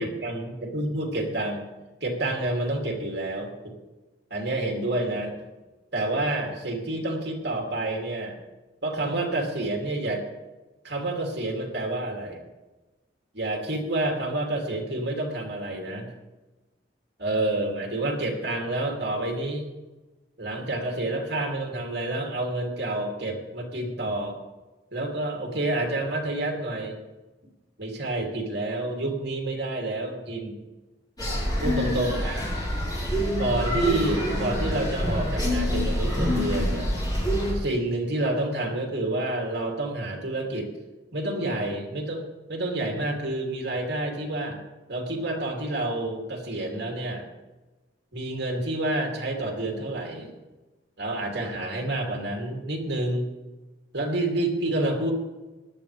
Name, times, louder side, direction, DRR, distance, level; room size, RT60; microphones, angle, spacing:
voice 1, 0.0-1.6 2.0-3.7 4.3-5.3 5.9-8.4 8.8-10.2 10.8-12.4 13.3-16.1 17.2-19.6 20.4-24.4 24.9-27.0 27.8-30.6 31.6-32.4 33.4-36.9 37.5-40.7 41.1-42.2 42.5-44.6 44.9-47.3 48.1-50.3 51.0-53.3 53.9-55.1, right 2 dB, 70° right, 1 dB, 3.1 m, -28 dB
sound 1, 31.2-37.5, equal, 20° left, 5.1 m, -26 dB
19.5 x 12.5 x 3.5 m, 1.1 s
head